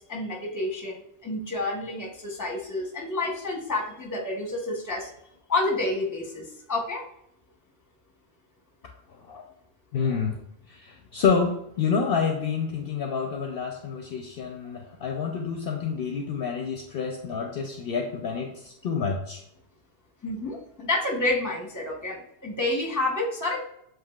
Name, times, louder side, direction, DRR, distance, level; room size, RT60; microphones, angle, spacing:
voice 1, 0.0-5.1 5.5-7.0 20.2-23.6, left 2 dB, 20° left, 0 dB, 0.8 m, -29 dB
voice 2, 9.9-10.4 10.7-19.4, left 5 dB, 65° left, 2 dB, 0.7 m, -28 dB
7.3 x 2.7 x 2.3 m, 0.76 s
omnidirectional pair, 1.2 m